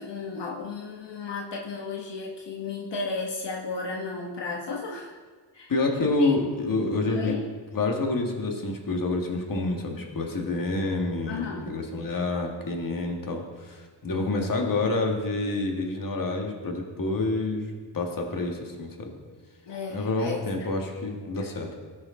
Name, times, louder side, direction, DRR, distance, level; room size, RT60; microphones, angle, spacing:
voice 1, 0.0-5.2 5.5-5.7 6.2-6.4 7.1-7.4 11.3-11.8 19.7-20.4, left 4 dB, 80° left, 0 dB, 1.2 m, -34 dB
voice 2, 5.7-7.3 7.7-17.7 17.9-19.1 19.9-21.8, left 2 dB, 50° left, 2 dB, 1.7 m, -28 dB
17.5 x 6.5 x 3.8 m, 1.4 s
wide cardioid pair, 120°, 42 cm